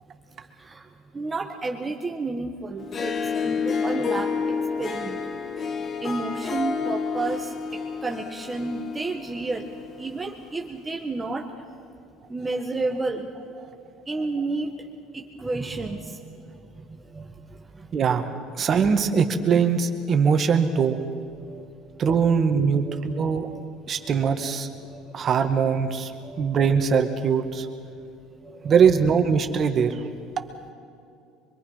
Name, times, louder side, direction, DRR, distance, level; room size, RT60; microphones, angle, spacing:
voice 1, 1.1-3.2 3.4-4.4 4.8-5.2 6.0-9.7 10.0-11.5 12.3-13.3 14.1-14.7 15.1-17.3 17.7-18.3 20.7-21.0 21.5-21.6 22.8-23.7 24.0-24.6 24.8-25.0 26.2-26.6 27.1-27.2 28.4-28.8, right 3 dB, 20° right, 1 dB, 1.6 m, -32 dB
Harp, 2.8-10.2, left 5 dB, 40° left, 1.4 m, -30 dB
voice 2, 17.9-18.3 18.6-21.0 22.0-23.5 23.9-24.7 25.1-26.1 26.4-27.7 28.6-29.9, right 6 dB, 45° right, 6 dB, 2.0 m, -21 dB
24.5 x 23.0 x 5.8 m, 2.5 s
hypercardioid pair, 80°, 0 cm